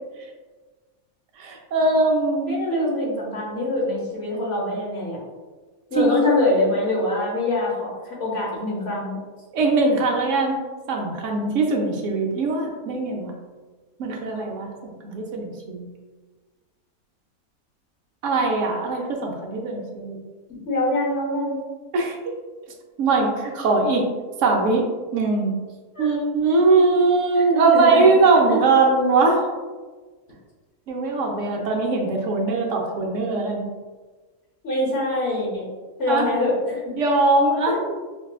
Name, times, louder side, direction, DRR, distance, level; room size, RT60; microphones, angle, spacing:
voice 1, 1.4-2.6 6.0-6.1 9.5-10.6 10.9-13.3 14.0-15.8 18.2-20.2 21.9-22.3 23.0-24.1 24.4-24.9 25.1-25.5 26.0-29.4 30.9-33.7 36.1-36.3 37.0-37.8, right 3 dB, 65° right, 0 dB, 0.9 m, -21 dB
voice 2, 2.5-5.2 5.9-9.2 20.6-21.6 25.9-26.1 27.3-28.1 28.5-28.6 34.6-35.7 36.0-36.9 37.7-37.8, left 1 dB, 50° left, -5 dB, 1.2 m, -24 dB
5.1 x 2.1 x 2.3 m, 1.4 s
omnidirectional pair, 1.6 m